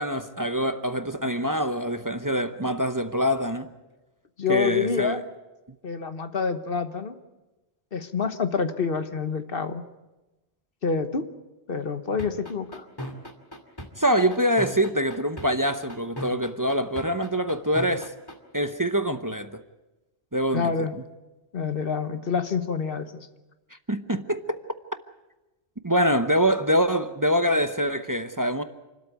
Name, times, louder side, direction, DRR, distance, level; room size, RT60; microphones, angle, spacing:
voice 1, 0.0-3.7 4.5-5.2 14.0-18.1 18.5-19.6 20.3-20.7 23.9-24.4 25.8-28.6, equal, 20° right, 0.8 m, -24 dB
voice 2, 4.4-5.2 5.8-7.2 7.9-9.8 10.8-11.3 11.7-12.8 20.5-20.9 21.5-23.3, left 5 dB, 60° left, 1.3 m, -27 dB
sound 1, 12.2-18.3, left 1 dB, 20° left, 2.5 m, -36 dB
28.0 x 13.0 x 9.2 m
omnidirectional pair, 1.1 m